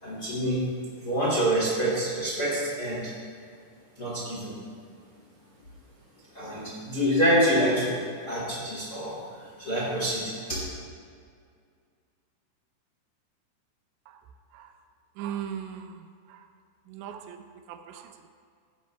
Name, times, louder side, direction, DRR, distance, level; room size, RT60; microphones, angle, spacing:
voice 1, 0.0-0.6 1.0-3.1 4.0-4.6 6.3-7.9 8.2-9.2 9.6-10.6, equal, 40° left, -6 dB, 1.4 m, -26 dB
voice 2, 15.2-16.0 16.3-16.4 16.9-18.3, right 9 dB, 85° right, 6 dB, 2.9 m, -39 dB
16.0 x 10.5 x 2.2 m, 2.2 s
omnidirectional pair, 5.5 m